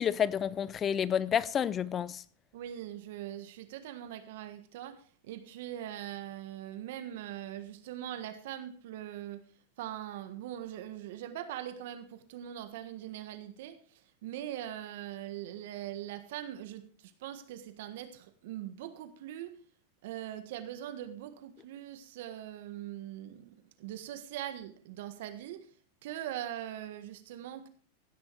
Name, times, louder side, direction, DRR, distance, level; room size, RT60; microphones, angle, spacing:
voice 1, 0.0-2.2, left 8 dB, 30° left, 0.5 m, -29 dB
voice 2, 2.5-9.5 9.8-13.8 14.2-19.6 20.0-25.7 26.0-27.7, right 12 dB, 65° right, 1.5 m, -41 dB
15.5 x 6.3 x 4.7 m
hypercardioid pair, 115°, 0 cm